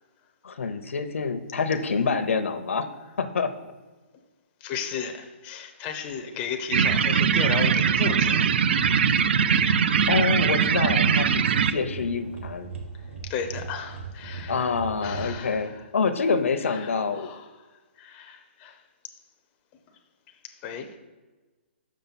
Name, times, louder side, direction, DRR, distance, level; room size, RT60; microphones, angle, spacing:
voice 1, 0.4-2.9 3.2-3.5 10.1-12.7 14.5-17.3, left 5 dB, 85° left, 10 dB, 0.6 m, -26 dB
voice 2, 4.6-8.5 8.9-9.6 13.3-14.7 15.0-15.8 16.6-17.4 18.0-18.8 20.6-20.9, left 6 dB, 20° left, 5 dB, 0.5 m, -35 dB
sound 1, 6.7-11.7, right 7 dB, 55° right, 0.4 m, -21 dB
sound 2, 7.1-15.3, right 4 dB, 70° right, 1.3 m, -40 dB
6.2 x 5.7 x 4.0 m, 1.2 s
hypercardioid pair, 160°, 7 cm